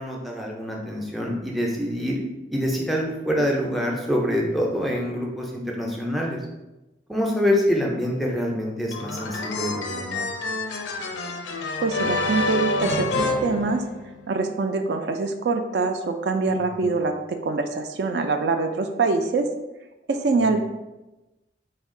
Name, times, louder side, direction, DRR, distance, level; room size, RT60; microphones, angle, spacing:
voice 1, 0.0-2.2 2.5-6.4 7.1-10.3 16.7-16.9 20.4-20.6, equal, ahead, -1 dB, 0.4 m, -26 dB
sound 1, 8.9-14.3, left 2 dB, 90° left, 0.5 m, -28 dB
voice 2, 11.8-13.8 14.3-19.5 20.1-20.6, right 3 dB, 65° right, 6 dB, 0.3 m, -24 dB
4.3 x 2.3 x 3.6 m, 1.0 s
head